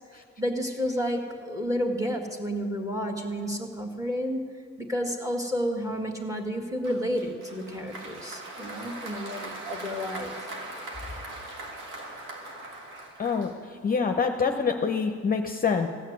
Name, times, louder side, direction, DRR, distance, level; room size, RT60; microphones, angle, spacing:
voice 1, 0.4-4.5 4.8-10.5, equal, 10° right, 3 dB, 1.8 m, -31 dB
Applause, 6.8-14.0, right 2 dB, 85° right, 1.7 m, -40 dB
voice 2, 13.2-13.5 13.8-15.9, left 5 dB, 30° left, 4 dB, 0.7 m, -25 dB
15.5 x 6.6 x 9.4 m, 2.1 s
cardioid pair, 90°, 30 cm